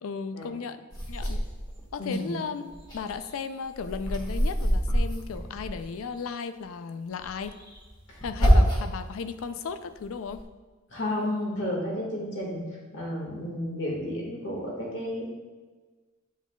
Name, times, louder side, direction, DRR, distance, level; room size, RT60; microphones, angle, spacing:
voice 1, 0.0-1.4 1.9-7.6 8.2-10.4, left 5 dB, 90° left, 11 dB, 0.4 m, -35 dB
sound 1, 0.9-2.2 2.6-6.2 7.2-9.0 9.5-10.4, equal, 20° left, 1.5 m, -27 dB
voice 2, 2.0-2.3 8.1-8.2 8.5-8.6 10.9-12.6 12.9-15.3, left 1 dB, 60° left, -2 dB, 1.7 m, -32 dB
9.8 x 4.7 x 2.3 m, 1.3 s
head